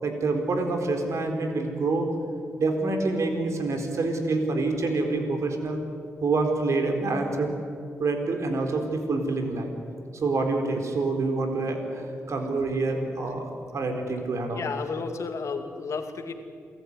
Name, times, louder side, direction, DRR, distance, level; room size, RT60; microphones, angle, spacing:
voice 1, 0.0-2.1 2.6-5.8 6.2-7.5 8.0-9.7 10.1-14.7, right 3 dB, 65° right, 4 dB, 4.1 m, -27 dB
voice 2, 14.5-16.3, left 5 dB, 65° left, 6 dB, 2.4 m, -32 dB
27.5 x 14.5 x 9.8 m, 2.3 s
cardioid pair, 60°, 5 cm